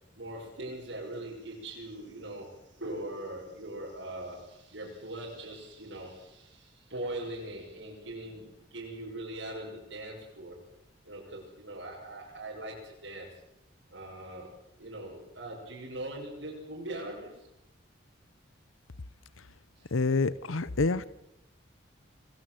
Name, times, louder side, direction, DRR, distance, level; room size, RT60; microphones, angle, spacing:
voice 1, 0.1-10.6 11.0-13.4 13.9-17.5 19.8-19.9, right 1 dB, 70° right, -3 dB, 6.1 m, -41 dB
voice 2, 19.9-21.1, left 3 dB, 90° left, 17 dB, 0.9 m, -27 dB
27.0 x 20.0 x 7.8 m, 0.89 s
head